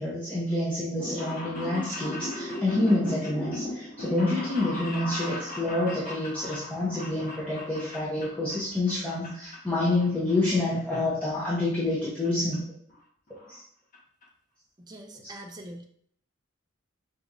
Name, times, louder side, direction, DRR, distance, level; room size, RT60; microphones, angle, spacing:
voice 1, 0.0-12.6 13.5-13.6 15.2-15.3, left 2 dB, 5° left, -10 dB, 0.7 m, -28 dB
sound 1, 0.8-8.6 8.9-9.6 9.9-11.0 11.2-11.3 12.2-12.3 12.5-12.6 12.9-13.0 13.3-13.6 13.9-14.0 14.2-14.3, left 1 dB, 40° left, 1.1 m, -37 dB
voice 2, 14.8-15.8, right 1 dB, 20° right, 3 dB, 0.4 m, -43 dB
5.0 x 2.9 x 2.5 m, 0.65 s
head